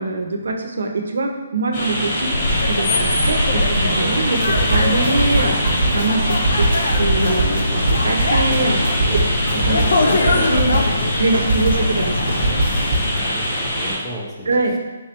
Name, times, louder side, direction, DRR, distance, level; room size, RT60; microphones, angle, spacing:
voice 1, 0.0-6.7 7.0-9.0 9.5-10.7 11.2-12.3 14.5-14.7, right 2 dB, 75° right, 3 dB, 0.6 m, -23 dB
sound 1, 1.7-14.0, equal, 40° left, 1.4 m, -24 dB
sound 2, 2.2-13.3, left 2 dB, 65° left, 0.5 m, -22 dB
sound 3, 4.4-11.0 11.3-13.2, right 2 dB, 45° right, 0.8 m, -23 dB
voice 2, 13.1-14.8, equal, 5° left, -5 dB, 0.5 m, -34 dB
4.6 x 3.1 x 2.9 m, 1.1 s
hypercardioid pair, 165°, 0 cm